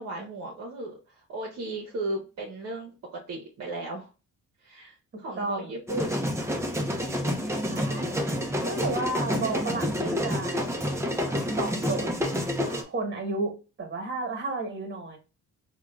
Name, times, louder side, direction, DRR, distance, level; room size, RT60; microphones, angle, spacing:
voice 1, 0.0-4.1 4.6-6.3, right 2 dB, 55° right, -1 dB, 0.9 m, -36 dB
voice 2, 5.1-5.7 7.7-8.2 8.6-10.7 11.6-12.1 12.6-15.2, right 3 dB, 40° right, 3 dB, 1.4 m, -32 dB
sound 1, 5.9-12.8, equal, 10° right, 0.6 m, -28 dB
3.6 x 2.4 x 2.3 m, 0.31 s
cardioid pair, 90°, 30 cm